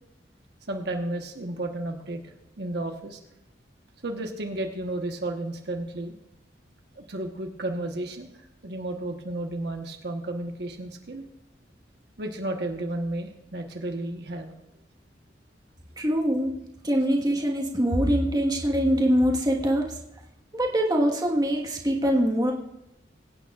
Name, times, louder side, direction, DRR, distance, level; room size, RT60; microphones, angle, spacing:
voice 1, 0.7-3.2 4.0-6.1 7.0-11.2 12.2-14.5, right 1 dB, 65° right, 3 dB, 1.1 m, -33 dB
voice 2, 16.0-16.6 16.8-20.0 20.5-22.5, equal, 20° right, 0 dB, 1.4 m, -23 dB
22.5 x 9.0 x 2.4 m, 0.89 s
head